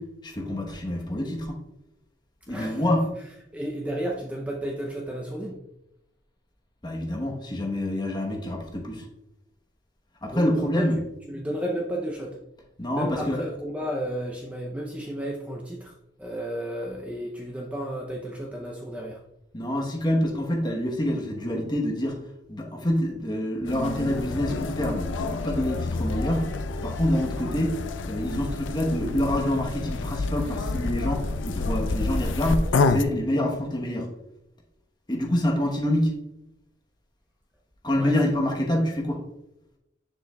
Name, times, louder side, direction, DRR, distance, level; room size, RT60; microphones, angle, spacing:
voice 1, 0.0-1.6 2.5-3.0 6.8-9.1 10.2-11.0 12.8-13.4 19.5-22.2 22.5-26.5 26.8-34.1 35.1-36.1 37.8-39.2, left 1 dB, 20° left, 1 dB, 1.0 m, -27 dB
voice 2, 2.5-2.9 3.5-5.6 10.3-10.9 11.3-12.4 12.9-19.2 37.9-38.2, right 1 dB, 5° right, -1 dB, 0.5 m, -33 dB
sound 1, 23.6-33.0, left 3 dB, 80° left, 0.5 m, -28 dB
7.5 x 6.6 x 2.3 m, 0.86 s
head